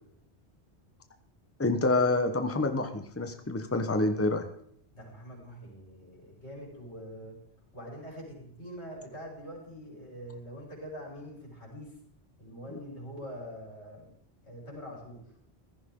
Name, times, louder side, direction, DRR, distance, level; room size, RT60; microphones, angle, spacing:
voice 1, 1.6-4.5 12.7-12.8, left 2 dB, 15° left, 6 dB, 1.0 m, -27 dB
voice 2, 4.9-7.4 7.7-12.0 12.4-14.1 14.4-15.2, equal, 85° left, -2 dB, 5.2 m, -44 dB
16.0 x 14.0 x 3.8 m, 0.68 s
omnidirectional pair, 1.1 m